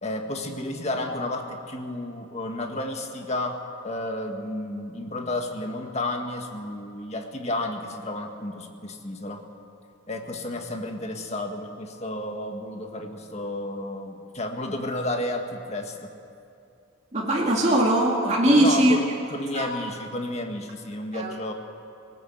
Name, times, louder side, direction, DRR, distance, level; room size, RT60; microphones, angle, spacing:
voice 1, 0.0-9.4 10.1-16.1 18.5-19.0 19.3-21.5, left 1 dB, 35° left, 4 dB, 1.7 m, -32 dB
voice 2, 17.1-18.9 19.5-19.7 21.1-21.3, right 1 dB, 35° right, -3 dB, 2.6 m, -20 dB
19.5 x 19.0 x 8.0 m, 2.6 s
head